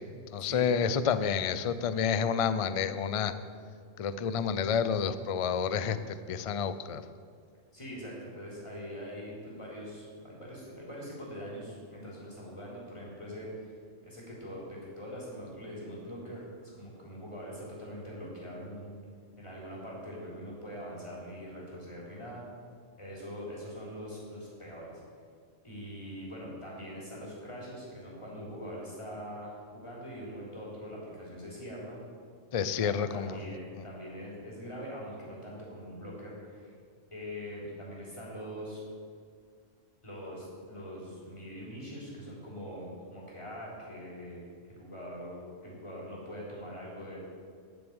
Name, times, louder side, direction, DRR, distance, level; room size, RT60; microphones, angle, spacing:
voice 1, 0.3-3.3 4.0-7.0 32.5-33.4, left 7 dB, 65° left, 13 dB, 0.3 m, -29 dB
voice 2, 7.7-13.7 14.0-16.5 16.8-19.0 19.4-22.4 23.0-25.0 25.6-32.0 32.6-36.7 37.1-38.8 40.0-44.4 44.7-47.2, equal, 25° left, -4 dB, 3.6 m, -43 dB
10.5 x 6.9 x 8.8 m, 2.1 s
omnidirectional pair, 1.3 m